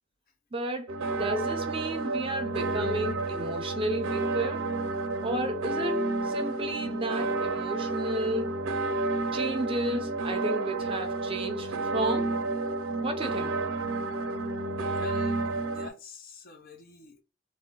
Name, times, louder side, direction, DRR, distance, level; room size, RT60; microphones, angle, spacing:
voice 1, 0.5-0.9 1.2-4.7 5.2-8.7 9.3-12.4 13.0-13.6, right 1 dB, 25° right, 0.5 m, -32 dB
sound 1, 0.9-15.9, right 2 dB, 75° right, 0.5 m, -30 dB
voice 2, 14.9-17.2, left 4 dB, 45° left, 0.5 m, -47 dB
2.6 x 2.0 x 3.7 m
head